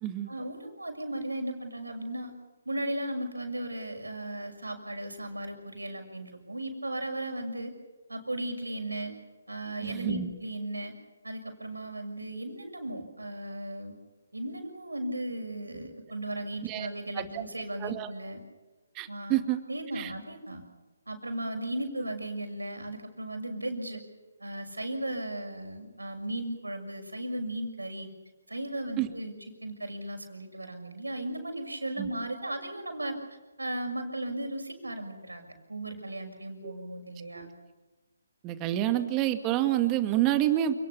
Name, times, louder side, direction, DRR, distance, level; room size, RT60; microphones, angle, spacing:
voice 1, 0.3-2.3 2.6-7.7 8.1-9.1 9.5-10.9 11.2-13.9 14.3-18.4 19.1-19.4 19.7-20.6 21.1-24.0 24.4-28.1 28.5-29.3 29.6-33.2 33.6-37.5, right 1 dB, 85° right, 5 dB, 6.4 m, -36 dB
voice 2, 9.8-10.3 16.6-16.9 17.1-17.4 17.8-18.1 19.0-19.6 19.9-20.1 29.0-29.1 32.0-32.1 36.6-36.7 37.3-37.5 38.4-40.7, right 13 dB, 20° right, 8 dB, 2.1 m, -28 dB
29.0 x 19.5 x 7.1 m, 1.2 s
figure-of-eight pair, 140°, 0 cm